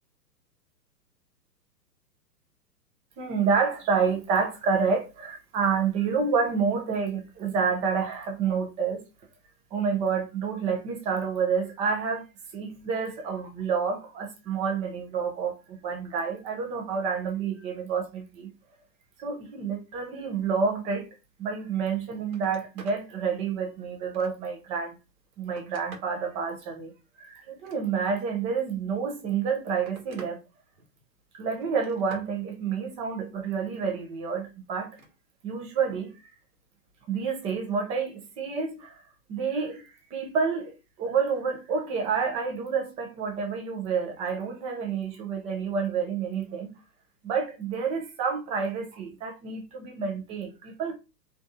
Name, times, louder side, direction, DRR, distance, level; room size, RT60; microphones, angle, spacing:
voice 1, 3.2-9.0 9.7-12.2 12.5-18.5 19.2-21.1 21.4-25.0 25.4-26.9 27.2-30.4 31.4-34.9 35.4-36.1 37.1-39.0 39.3-46.7 47.2-50.9, right 5 dB, 15° right, 0.6 m, -29 dB
Telephone, 22.2-23.0 23.5-24.6 25.2-26.2 27.4-28.2 29.2-30.4 30.7-31.2 31.6-32.3 34.8-35.1 36.5-36.7, right 4 dB, 60° right, 1.4 m, -49 dB
3.8 x 3.3 x 2.7 m
figure-of-eight pair, 120°, 49 cm